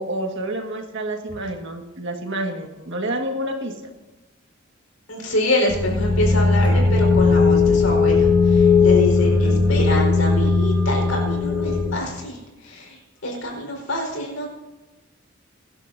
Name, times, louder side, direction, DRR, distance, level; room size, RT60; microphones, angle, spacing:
voice 1, 0.0-3.7 9.2-9.9, right 1 dB, 60° right, 3 dB, 1.7 m, -29 dB
voice 2, 5.1-12.4 12.6-13.0 13.2-14.5, left 1 dB, 90° left, 0 dB, 4.6 m, -26 dB
sound 1, 5.7-11.9, left 4 dB, 5° right, 2.2 m, -17 dB
23.5 x 11.5 x 2.7 m, 1.1 s
head